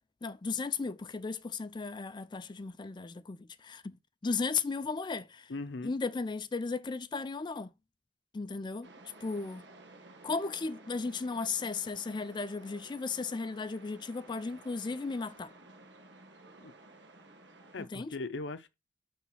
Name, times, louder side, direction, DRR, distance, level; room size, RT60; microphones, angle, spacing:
voice 1, 0.2-3.9 4.2-5.5 5.8-7.7 8.3-8.9 9.2-9.6 10.2-15.5 17.8-18.1, left 4 dB, 25° left, 0.4 m, -35 dB
voice 2, 5.5-5.9 16.6-16.7 17.7-18.7, left 3 dB, 85° left, 0.6 m, -39 dB
sound 1, 8.8-17.9, right 2 dB, 80° right, 1.4 m, -54 dB
6.0 x 3.5 x 5.5 m
head